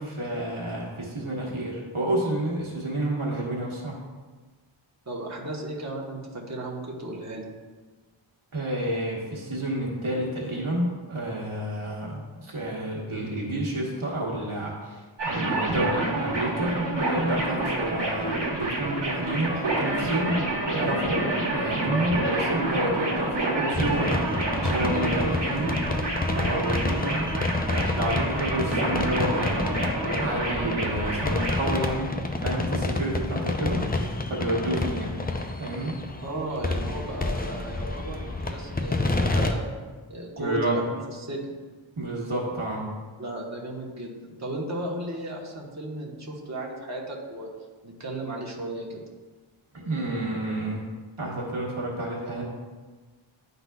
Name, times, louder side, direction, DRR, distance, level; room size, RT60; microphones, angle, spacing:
voice 1, 0.0-4.0 8.5-24.2 24.6-25.7 26.3-29.9 30.2-32.1 32.4-33.8 34.3-35.1 35.6-35.9 40.4-40.8 42.0-42.8 49.7-50.8 51.2-52.4, right 1 dB, 90° right, -3 dB, 1.3 m, -29 dB
voice 2, 5.1-7.4 36.2-39.7 40.1-41.5 43.2-47.5 47.8-49.0, right 1 dB, 35° right, -3 dB, 1.2 m, -35 dB
sound 1, 15.2-31.7, right 2 dB, 60° right, 1.5 m, -28 dB
sound 2, 23.7-39.5, left 2 dB, 20° left, 0.5 m, -29 dB
11.0 x 4.0 x 2.3 m, 1.3 s
wide cardioid pair, 45°, 48 cm